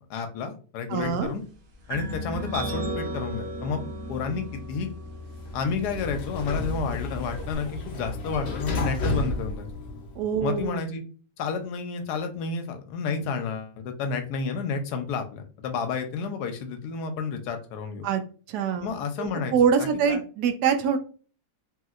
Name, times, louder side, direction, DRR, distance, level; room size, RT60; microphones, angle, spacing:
voice 1, 0.1-1.4 1.9-3.8 4.1-4.9 5.5-9.7 10.4-11.0 11.4-18.1 18.8-19.5 19.8-20.2, left 5 dB, 90° left, 6 dB, 1.2 m, -31 dB
voice 2, 0.9-1.3 10.2-10.8 18.0-18.2 18.5-18.9 19.2-21.0, right 7 dB, 85° right, 7 dB, 1.2 m, -24 dB
sound 1, 1.9-7.6, right 1 dB, 55° right, 1.2 m, -36 dB
Sliding door, 5.2-10.4, left 2 dB, 55° left, 0.8 m, -32 dB
3.1 x 2.8 x 2.4 m, 0.39 s
omnidirectional pair, 1.7 m